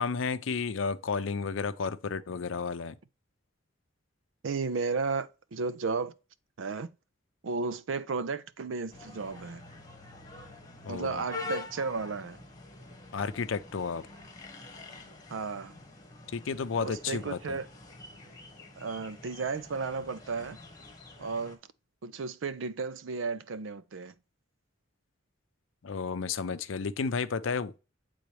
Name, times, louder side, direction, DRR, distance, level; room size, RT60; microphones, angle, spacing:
voice 1, 0.0-3.0 10.8-11.2 13.1-14.1 16.3-17.6 25.8-27.8, left 5 dB, 85° left, 0.5 m, -32 dB
voice 2, 4.4-6.1 6.6-6.9 7.4-9.6 10.9-12.4 15.3-15.7 16.8-17.7 18.8-20.6 21.2-21.6 22.0-24.1, right 4 dB, 80° right, 0.5 m, -34 dB
sound 1, 8.9-21.6, left 3 dB, 20° left, 1.5 m, -46 dB
8.0 x 3.9 x 3.2 m
head